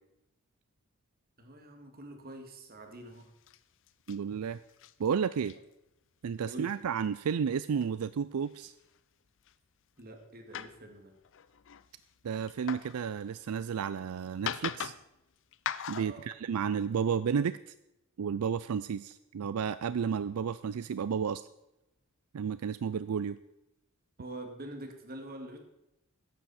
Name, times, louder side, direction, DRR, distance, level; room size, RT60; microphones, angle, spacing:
voice 1, 1.4-3.3 6.4-6.8 10.0-11.2 16.0-16.3 24.2-25.6, right 1 dB, 45° right, 4 dB, 2.1 m, -45 dB
sound 1, 2.8-2.9 3.1-3.6 3.9-4.2 4.5-5.1 5.4-5.6 6.5-6.8 7.8-7.9 8.4-9.0 9.5-9.6 10.0-10.2 10.5-13.7 14.3-15.2 15.5-16.3, left 9 dB, 60° left, 0.6 m, -40 dB
voice 2, 4.1-4.6 5.0-5.5 6.2-8.7 12.2-14.9 15.9-17.7 18.2-21.4 22.3-23.4, right 7 dB, 85° right, 15 dB, 0.4 m, -32 dB
14.0 x 10.5 x 4.3 m, 0.88 s
head